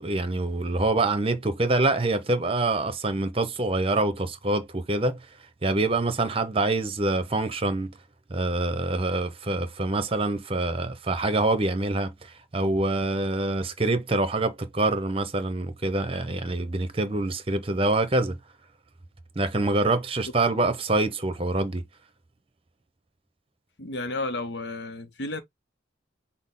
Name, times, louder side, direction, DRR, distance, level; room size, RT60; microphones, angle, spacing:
voice 1, 0.0-5.2 5.6-8.0 8.3-18.4 19.4-21.8, right 2 dB, 30° right, 0.8 m, -25 dB
voice 2, 23.8-25.4, left 2 dB, 60° left, 0.7 m, -32 dB
6.2 x 2.1 x 3.8 m
head